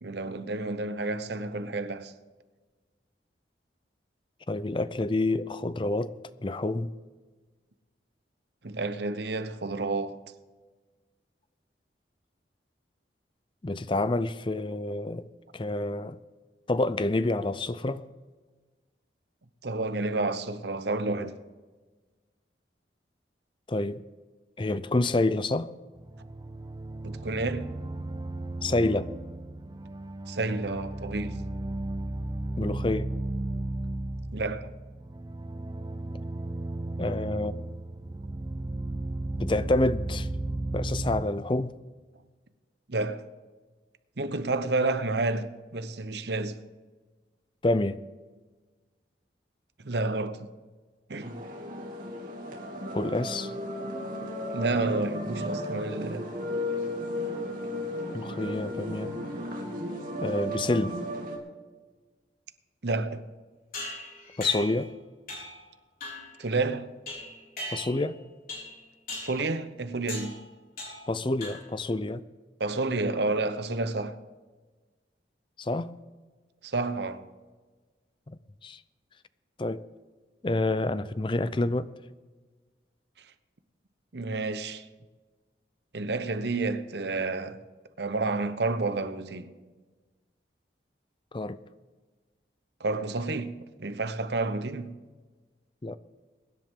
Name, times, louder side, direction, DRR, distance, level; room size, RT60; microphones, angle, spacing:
voice 1, 0.0-2.1 8.6-10.2 19.6-21.4 27.0-27.7 30.3-31.4 34.3-34.7 42.9-43.2 44.2-46.6 49.8-50.5 51.1-51.4 54.5-56.3 62.8-63.2 66.4-66.9 69.2-70.4 72.6-74.2 76.6-77.3 83.2-83.3 84.1-84.9 85.9-87.6 88.0-89.5 92.8-95.0, right 3 dB, 65° right, 0.9 m, -30 dB
voice 2, 4.5-6.1 6.4-6.9 13.6-15.3 15.5-16.2 16.7-18.0 23.7-24.0 24.6-25.7 28.6-29.1 32.6-33.1 37.0-37.5 39.4-40.3 40.7-41.7 47.6-48.0 52.9-53.5 58.1-59.1 60.2-61.0 64.4-64.9 67.7-68.2 71.1-72.2 75.6-75.9 78.3-78.8 79.6-79.8 80.4-81.9 91.3-91.6 95.8-96.0, left 2 dB, 25° left, 0.5 m, -28 dB
sound 1, 26.0-41.2, right 2 dB, 20° right, 0.6 m, -34 dB
sound 2, 51.2-61.4, equal, 50° right, 2.6 m, -34 dB
sound 3, 63.7-64.9 65.3-65.6 66.0-66.4 67.1-68.1 68.5-68.8 69.1-69.4 70.1-70.4 70.8-71.1 71.4-71.8, left 1 dB, 50° left, 5.1 m, -39 dB
23.0 x 10.5 x 3.7 m
head